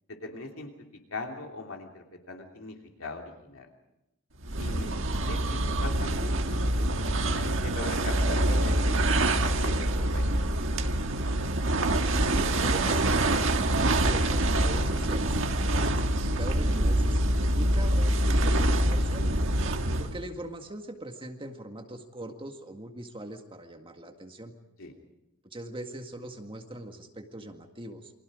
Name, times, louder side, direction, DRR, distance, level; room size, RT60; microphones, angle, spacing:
voice 1, 0.1-0.7 1.1-3.7 4.4-5.0 5.3-10.3 24.8-24.9, left 2 dB, 65° left, 2 dB, 3.0 m, -41 dB
sound 1, 4.4-20.2, right 1 dB, 65° right, 1.7 m, -25 dB
voice 2, 12.2-15.4 15.8-19.3 20.0-24.5 25.4-28.1, right 1 dB, 25° right, 4 dB, 1.9 m, -41 dB
29.0 x 25.0 x 5.0 m, 0.87 s
head